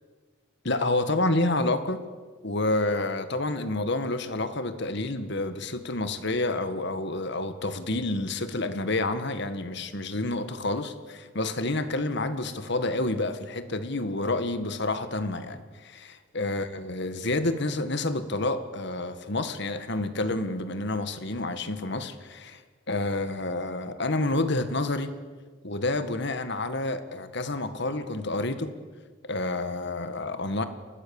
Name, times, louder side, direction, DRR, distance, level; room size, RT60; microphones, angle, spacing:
voice 1, 0.6-2.0 2.4-22.6 22.9-25.1 25.6-28.7 29.2-30.6, left 2 dB, 55° left, 10 dB, 1.9 m, -29 dB
29.5 x 20.5 x 7.2 m, 1.5 s
head